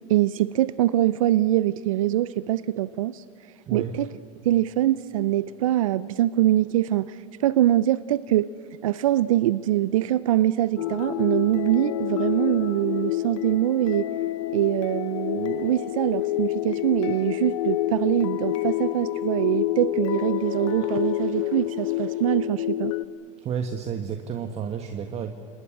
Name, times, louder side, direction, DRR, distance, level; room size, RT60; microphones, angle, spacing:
voice 1, 0.1-3.2 3.7-4.1 4.4-8.5 8.8-14.1 14.5-22.9, right 13 dB, 85° right, 17 dB, 0.5 m, -23 dB
voice 2, 3.7-4.0 23.4-25.3, right 7 dB, 40° right, 7 dB, 1.5 m, -31 dB
sound 1, 10.8-23.1, left 14 dB, 80° left, 0.9 m, -28 dB
30.0 x 19.5 x 8.6 m, 2.3 s
hypercardioid pair, 105°, 17 cm